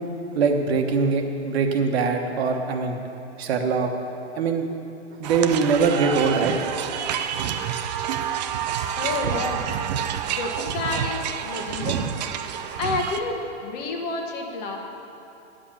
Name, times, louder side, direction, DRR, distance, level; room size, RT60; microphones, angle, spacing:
voice 1, 0.3-3.0 3.4-3.9 4.4-4.7 5.2-6.6, right 5 dB, 60° right, 4 dB, 1.2 m, -22 dB
sound 1, 5.2-13.2, right 9 dB, 40° right, 0.5 m, -28 dB
voice 2, 8.9-9.7 10.3-12.1 12.8-14.8, left 3 dB, 35° left, 2 dB, 1.3 m, -29 dB
10.0 x 7.6 x 7.2 m, 2.9 s
hypercardioid pair, 145°, 35 cm